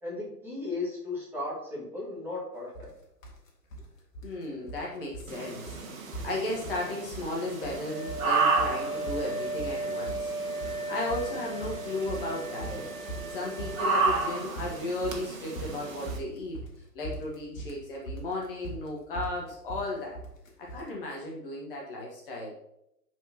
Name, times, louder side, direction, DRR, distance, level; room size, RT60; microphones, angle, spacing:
voice 1, 0.0-2.9, left 2 dB, 5° right, -8 dB, 1.9 m, -36 dB
sound 1, 2.7-2.9 3.2-3.9 4.1-4.9 5.1-5.4 5.7-5.8 6.1-6.9 7.1-7.8 8.1-20.9, right 2 dB, 55° left, 1.8 m, -40 dB
voice 2, 4.2-12.9 13.3-16.6 16.9-20.2 20.6-22.5, left 2 dB, 35° left, -2 dB, 1.4 m, -35 dB
sound 2, 5.3-16.2, right 4 dB, 55° right, 1.5 m, -33 dB
Wind instrument woodwind instrument, 7.8-14.4, right 2 dB, 15° left, 1.7 m, -36 dB
10.5 x 4.6 x 2.9 m, 0.81 s
figure-of-eight pair, 130°, 48 cm